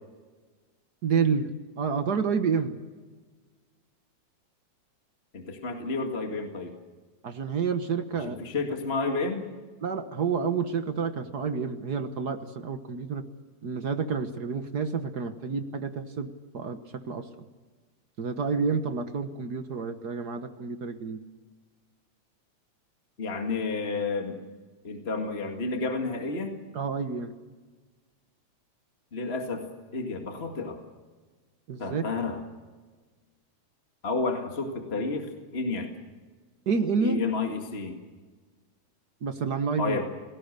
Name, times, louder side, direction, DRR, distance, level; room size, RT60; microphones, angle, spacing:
voice 1, 1.0-1.5 1.8-2.7 7.2-8.3 9.8-13.2 13.6-16.8 17.1-17.3 18.2-21.2 26.7-27.3 31.7-32.0 36.7-37.2 39.2-40.0, right 5 dB, 50° right, 8 dB, 1.2 m, -29 dB
voice 2, 5.3-6.8 8.2-9.5 23.2-24.4 24.8-26.6 29.1-30.8 31.8-32.4 34.0-35.9 37.0-38.0 39.8-40.0, left 3 dB, 25° left, 3 dB, 1.9 m, -31 dB
29.0 x 18.5 x 6.7 m, 1.4 s
omnidirectional pair, 3.3 m